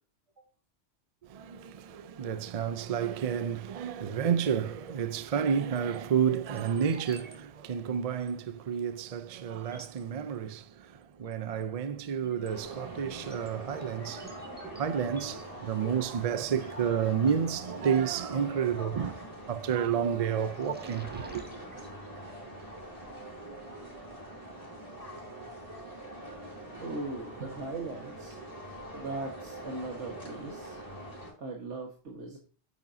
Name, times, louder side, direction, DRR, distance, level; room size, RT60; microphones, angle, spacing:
voice 1, 1.2-14.4 14.8-21.5, right 7 dB, 50° right, 0.4 m, -30 dB
sound 1, 5.5-6.0 6.5-7.4 7.6-7.7 8.2-8.3 9.0-9.1 9.5-10.0 11.3-11.6 12.0-18.0 19.6-19.9 20.3-21.9, equal, 10° right, 1.4 m, -53 dB
sound 2, 12.5-31.3, right 1 dB, 30° left, 3.7 m, -44 dB
voice 2, 26.8-28.4 28.9-30.9 31.4-32.4, right 3 dB, 80° right, 1.7 m, -39 dB
8.9 x 8.1 x 2.7 m
omnidirectional pair, 1.2 m